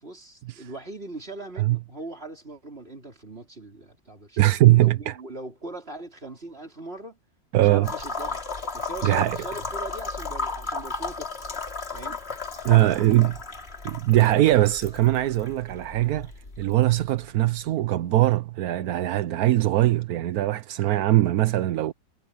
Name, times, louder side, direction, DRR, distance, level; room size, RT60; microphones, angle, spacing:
voice 1, 0.0-7.2 7.5-8.4 8.7-11.6 11.9-12.2 12.7-13.3, right 2 dB, 30° right, 4.7 m, -40 dB
voice 2, 4.4-5.2 7.5-7.9 9.0-9.4 12.6-13.3 13.8-16.3 16.6-21.9, right 15 dB, 65° right, 1.0 m, -21 dB
sound 1, 7.8-17.6, left 4 dB, 30° left, 3.0 m, -35 dB
omnidirectional pair, 2.0 m